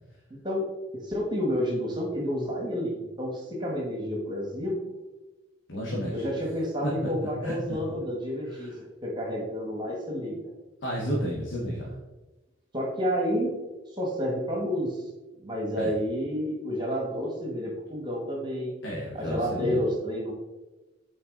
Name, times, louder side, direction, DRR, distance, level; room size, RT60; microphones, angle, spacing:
voice 1, 0.3-0.7 0.9-4.9 6.1-8.7 9.0-10.5 12.7-13.5 13.9-15.0 15.4-18.7 19.1-20.3, equal, 25° right, -1 dB, 1.4 m, -30 dB
voice 2, 5.7-6.2 6.8-7.5 8.5-8.7 10.8-12.0 15.8-15.9 18.8-19.8, equal, 75° left, -4 dB, 1.3 m, -32 dB
8.5 x 4.5 x 3.8 m, 1.1 s
head